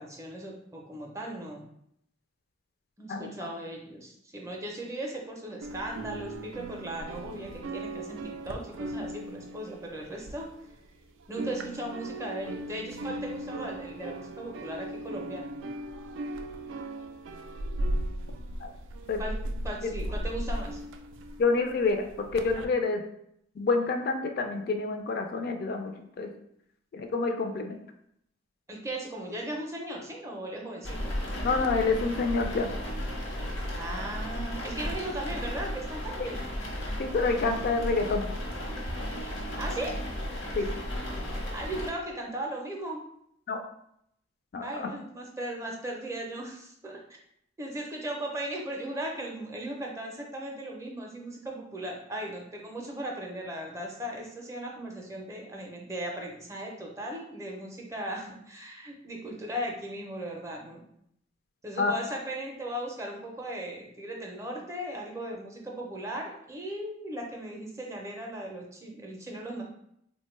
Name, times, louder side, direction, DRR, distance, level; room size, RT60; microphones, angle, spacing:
voice 1, 0.0-1.6 3.0-10.5 11.3-15.5 19.2-19.4 19.6-20.8 28.7-31.1 33.8-36.4 39.6-40.0 40.6-40.7 41.5-43.0 44.6-47.2 47.6-60.8 61.6-69.6, right 1 dB, 15° right, 0 dB, 0.5 m, -37 dB
sound 1, 5.6-11.0 11.2-22.7, right 1 dB, 85° right, 0.3 m, -37 dB
voice 2, 21.4-23.0 23.6-25.9 26.2-26.3 26.9-27.8 31.4-32.7 36.2-36.3 37.0-38.2 40.5-40.7 43.5-43.6 44.5-44.9 61.8-61.9, left 3 dB, 50° left, 5 dB, 0.3 m, -27 dB
sound 2, 30.8-41.9, equal, 90° left, 0.9 m, -34 dB
3.5 x 2.1 x 3.1 m, 0.73 s
head